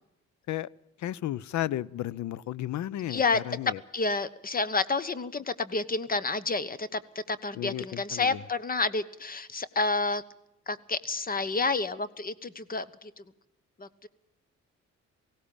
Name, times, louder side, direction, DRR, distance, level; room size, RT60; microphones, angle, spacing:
voice 1, 1.0-3.8 7.5-8.4, left 13 dB, 70° left, 0.7 m, -33 dB
voice 2, 3.1-3.4 3.9-7.0 7.3-10.2 10.7-13.2 13.8-14.1, left 3 dB, 30° left, 1.2 m, -29 dB
18.5 x 16.5 x 8.6 m
cardioid pair, 90°, 30 cm